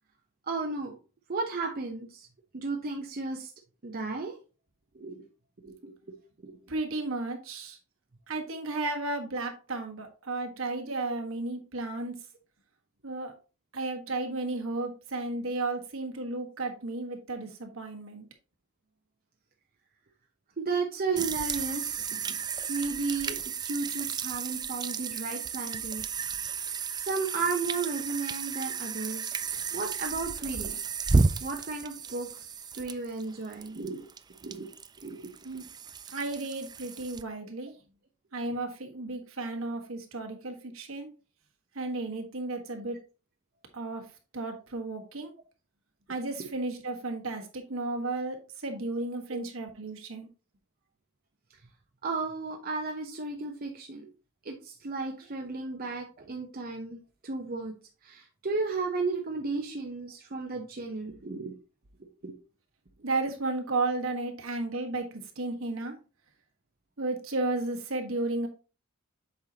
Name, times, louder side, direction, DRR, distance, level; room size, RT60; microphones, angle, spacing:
voice 1, 0.5-0.9 1.3-2.3 2.5-3.5 3.8-4.4 4.9-5.2 5.6-6.6 10.9-11.1 20.6-22.3 22.7-26.0 27.0-29.4 29.7-30.8 31.4-32.5 32.7-34.1 34.4-34.7 35.0-35.3 49.3-49.4 52.0-54.1 54.4-57.7 58.0-61.5 62.0-62.3, right 4 dB, 45° right, 2 dB, 0.8 m, -34 dB
voice 2, 6.7-7.8 8.3-12.1 13.0-13.3 13.7-18.3 35.4-35.6 36.1-37.7 38.3-41.1 41.7-43.0 43.7-45.3 46.1-50.3 63.0-65.9 67.0-68.5, right 2 dB, 70° right, 3 dB, 1.5 m, -33 dB
sound 1, 21.2-37.2, right 4 dB, 20° right, 0.4 m, -33 dB
8.0 x 5.5 x 2.9 m, 0.34 s
head